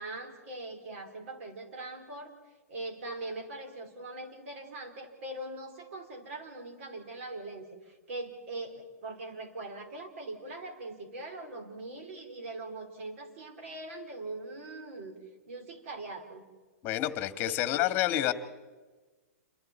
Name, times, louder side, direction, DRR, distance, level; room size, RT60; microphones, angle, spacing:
voice 1, 0.0-2.3 2.7-15.1 15.5-16.4 17.4-17.6, right 2 dB, 60° right, 5 dB, 4.4 m, -41 dB
voice 2, 16.8-18.3, left 13 dB, 30° left, 12 dB, 1.6 m, -28 dB
28.5 x 23.0 x 4.5 m, 1.3 s
hypercardioid pair, 140°, 8 cm